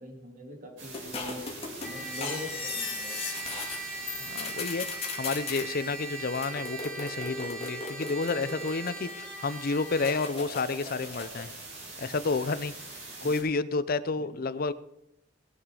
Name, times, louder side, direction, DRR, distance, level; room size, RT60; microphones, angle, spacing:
voice 1, 0.0-1.4 1.8-3.2 13.2-13.3 14.2-14.3, left 1 dB, 45° right, 2 dB, 2.6 m, -42 dB
sound 1, 0.8-13.4, right 3 dB, 80° right, 5.3 m, -46 dB
sound 2, 0.9-3.8 4.1-5.7 6.3-9.3 10.0-11.5, left 5 dB, 30° left, 2.3 m, -38 dB
Trumpet, 1.8-10.3, right 3 dB, 5° left, 2.7 m, -40 dB
voice 2, 4.2-11.5 12.0-12.7 13.2-14.7, left 4 dB, 50° left, 15 dB, 0.6 m, -30 dB
19.5 x 7.4 x 4.9 m, 0.79 s
head